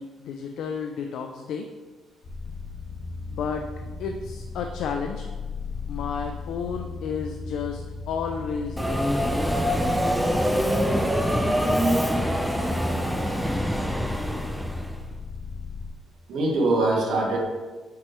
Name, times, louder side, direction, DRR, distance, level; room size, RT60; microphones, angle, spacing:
voice 1, 0.0-1.7 3.3-3.7 4.0-5.3 5.9-9.2, left 6 dB, 80° left, 4 dB, 0.4 m, -32 dB
sound 1, 2.2-15.9, left 3 dB, 50° left, 1.2 m, -36 dB
Subway metro underground, 8.8-15.0, equal, ahead, 0.6 m, -24 dB
voice 2, 16.3-17.4, right 2 dB, 75° right, 0 dB, 1.4 m, -23 dB
8.4 x 4.6 x 3.1 m, 1.3 s
cardioid pair, 90°, 0 cm